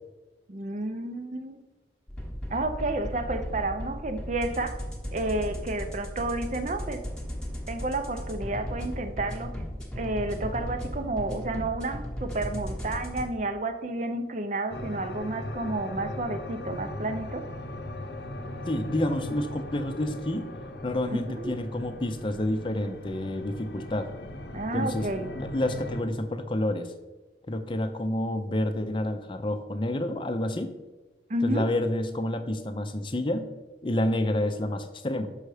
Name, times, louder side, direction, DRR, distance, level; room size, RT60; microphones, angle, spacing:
voice 1, 0.5-1.6 2.5-4.8 5.1-7.0 7.7-9.6 10.0-17.4 21.1-21.6 24.5-25.3 31.3-31.7, right 2 dB, 40° right, 8 dB, 0.6 m, -31 dB
sound 1, 2.1-13.3, equal, 5° left, 1.0 m, -36 dB
sound 2, 14.7-26.0, left 1 dB, 65° left, 0.7 m, -39 dB
voice 2, 18.7-20.5 20.8-24.1 24.7-25.1 25.3-26.9 27.5-30.7 31.4-33.5 33.8-35.3, left 1 dB, 30° left, 8 dB, 0.6 m, -29 dB
6.5 x 5.6 x 4.9 m, 1.2 s
head